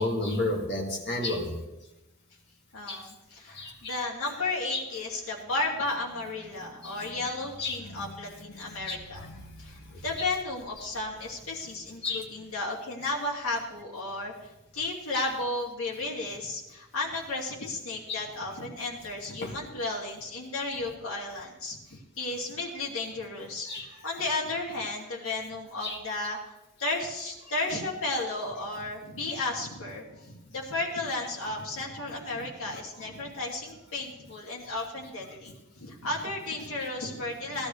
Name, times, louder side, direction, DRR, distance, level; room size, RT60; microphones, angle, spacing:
voice 1, 0.0-1.6 2.9-3.0 3.5-3.9 4.7-4.8 6.8-7.1 7.6-8.1 8.5-10.0 12.0-12.2 15.1-15.3 18.1-18.2 19.4-19.5 23.7-23.8 25.8-26.0 34.7-34.8 36.8-36.9, left 2 dB, 50° left, -1 dB, 2.3 m, -33 dB
voice 2, 2.7-9.3 9.6-37.7, left 2 dB, 70° left, -4 dB, 2.6 m, -34 dB
18.0 x 12.5 x 3.2 m, 0.98 s
head